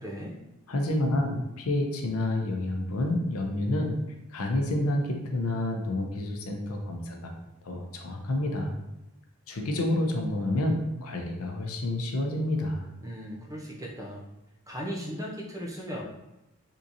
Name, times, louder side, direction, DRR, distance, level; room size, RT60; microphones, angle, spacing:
voice 1, 0.0-0.4 13.0-14.2 14.7-16.0, equal, 15° right, -2 dB, 0.5 m, -37 dB
voice 2, 0.7-3.9 4.3-7.3 7.7-8.7 9.5-12.8, left 1 dB, 80° left, 3 dB, 0.6 m, -29 dB
3.7 x 2.8 x 2.5 m, 0.98 s
head